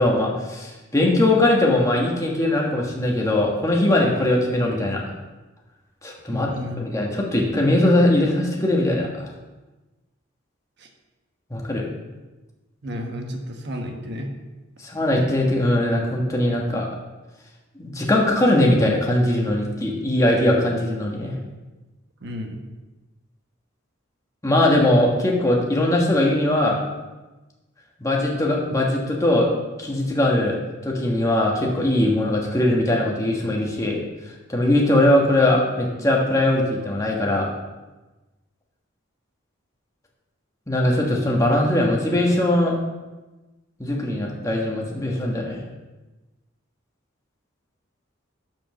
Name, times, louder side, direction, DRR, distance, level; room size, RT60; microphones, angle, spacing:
voice 1, 0.0-5.0 6.0-6.5 6.9-9.3 11.5-11.9 14.8-16.8 17.8-21.4 24.4-26.8 28.0-29.5 29.8-30.6 30.8-34.0 34.3-37.5 40.7-42.8 43.8-45.6, left 1 dB, 15° left, -2 dB, 1.4 m, -20 dB
voice 2, 6.3-6.8 10.8-10.9 12.8-14.3 22.2-22.6, left 1 dB, 55° right, 3 dB, 1.2 m, -32 dB
7.2 x 5.1 x 6.3 m, 1.1 s
head